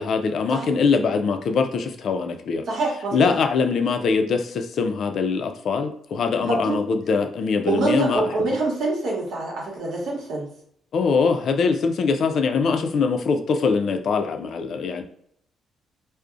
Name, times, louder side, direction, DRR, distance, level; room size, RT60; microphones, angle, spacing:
voice 1, 0.0-2.7 3.1-8.5 10.9-15.0, left 5 dB, 60° left, 7 dB, 0.3 m, -23 dB
voice 2, 2.7-3.3 6.7-6.8 7.7-10.5, right 3 dB, 75° right, -2 dB, 0.8 m, -25 dB
2.5 x 2.0 x 2.4 m, 0.68 s
cardioid pair, 90°, 0 cm